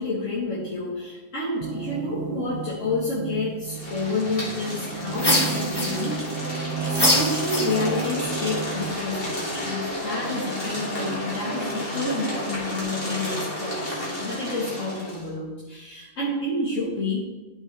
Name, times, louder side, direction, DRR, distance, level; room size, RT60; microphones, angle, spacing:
voice 1, 0.0-17.2, left 2 dB, 75° left, -8 dB, 1.8 m, -29 dB
sound 1, 1.6-8.9, right 6 dB, 85° right, 1.0 m, -33 dB
sound 2, 3.7-15.3, left 1 dB, 50° left, 2.2 m, -31 dB
sound 3, 5.2-6.3 6.9-8.1, left 1 dB, 20° left, 0.9 m, -23 dB
12.0 x 4.6 x 3.2 m, 1.2 s
omnidirectional pair, 1.3 m